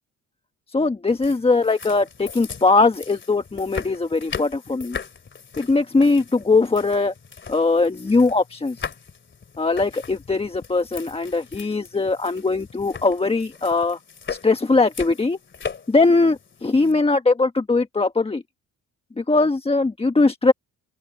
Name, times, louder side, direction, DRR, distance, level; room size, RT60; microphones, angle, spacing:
voice 1, 0.7-5.0 5.6-7.1 7.5-8.9 9.6-14.0 14.3-15.4 15.9-18.4 19.2-20.5, left 3 dB, 20° left, 1.2 m, -20 dB
sound 1, 1.1-16.9, left 6 dB, 40° left, 2.7 m, -38 dB
open air
cardioid pair, 90°, 30 cm